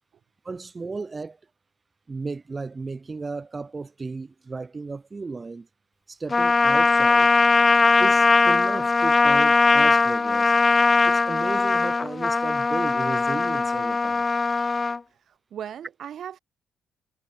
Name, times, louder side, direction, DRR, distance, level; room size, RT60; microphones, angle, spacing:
voice 1, 0.4-1.4 2.1-5.7 6.1-7.3 8.0-10.5 11.1-14.3, right 4 dB, 30° right, 3.9 m, -34 dB
Trumpet, 6.3-15.0, left 4 dB, 30° left, 0.4 m, -20 dB
voice 2, 15.1-16.4, right 9 dB, 65° right, 4.2 m, -38 dB
cardioid pair, 90°, 0 cm